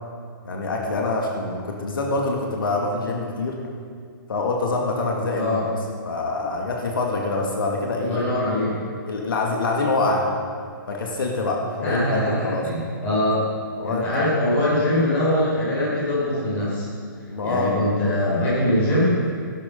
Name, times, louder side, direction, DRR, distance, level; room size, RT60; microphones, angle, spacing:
voice 1, 0.4-3.6 4.3-5.7 6.0-8.3 9.1-10.2 10.9-12.7 13.8-14.1 17.3-17.7, left 3 dB, 70° left, 0 dB, 2.2 m, -25 dB
voice 2, 5.3-5.6 8.0-8.7 11.8-12.3 12.6-13.4 13.8-16.9 17.4-19.3, left 1 dB, 15° left, -8 dB, 4.6 m, -22 dB
16.5 x 12.0 x 5.4 m, 2.2 s
hypercardioid pair, 180°, 12 cm